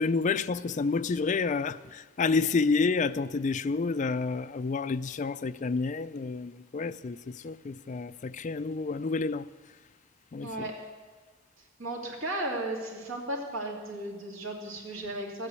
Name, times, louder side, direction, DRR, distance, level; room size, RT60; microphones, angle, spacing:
voice 1, 0.0-9.5 10.3-10.7, left 4 dB, 35° left, 0.4 m, -29 dB
voice 2, 10.4-10.8 11.8-15.5, right 1 dB, 70° right, 2.6 m, -35 dB
14.5 x 8.7 x 8.3 m
head